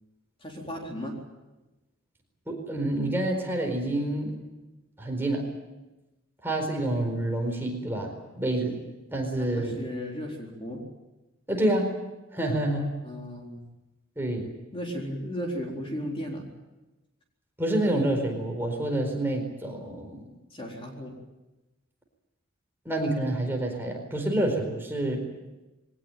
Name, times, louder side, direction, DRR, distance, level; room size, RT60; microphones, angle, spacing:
voice 1, 0.4-1.2 9.4-10.8 13.0-13.6 14.7-16.4 20.5-21.2, equal, 25° left, 0 dB, 4.1 m, -35 dB
voice 2, 2.5-4.4 5.0-5.5 6.4-8.8 9.1-9.8 11.5-11.9 12.3-12.9 14.2-14.5 17.6-20.2 22.8-25.3, right 1 dB, 10° right, 1 dB, 4.5 m, -28 dB
22.5 x 18.5 x 9.1 m, 1.1 s
head